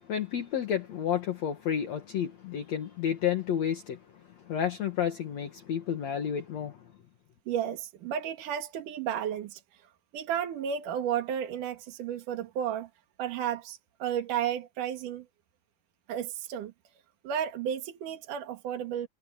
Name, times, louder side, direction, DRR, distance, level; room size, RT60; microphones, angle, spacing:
voice 1, 0.1-4.0 4.5-6.8, left 9 dB, 60° left, 2.7 m, -31 dB
voice 2, 7.5-12.9 13.2-15.3 16.1-16.7 17.2-19.1, right 9 dB, 80° right, 3.2 m, -33 dB
omnidirectional pair, 3.7 m